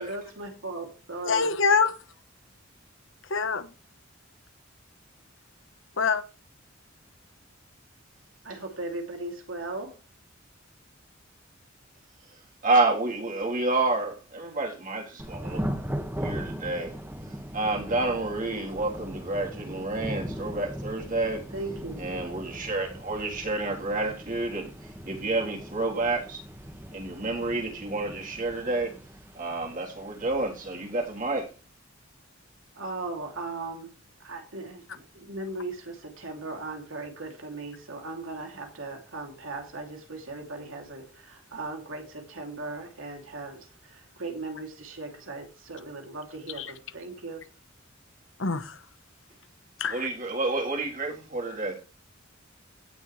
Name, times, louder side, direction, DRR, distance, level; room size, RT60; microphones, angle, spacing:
voice 1, 0.0-1.5 8.4-10.0 21.5-22.1 32.7-33.9 34.2-47.5, right 2 dB, 90° right, 2.9 m, -38 dB
voice 2, 1.2-1.9 3.3-3.7 6.0-6.2 46.6-46.7 48.4-48.7 49.8-50.1, left 5 dB, 70° left, 1.2 m, -24 dB
voice 3, 12.3-15.8 16.1-17.0 17.5-21.5 22.0-26.4 26.9-29.0 29.3-31.5 49.9-51.8, right 2 dB, 45° right, 3.5 m, -29 dB
Thunder / Rain, 15.2-31.5, equal, 10° right, 1.7 m, -39 dB
17.0 x 6.8 x 3.3 m
head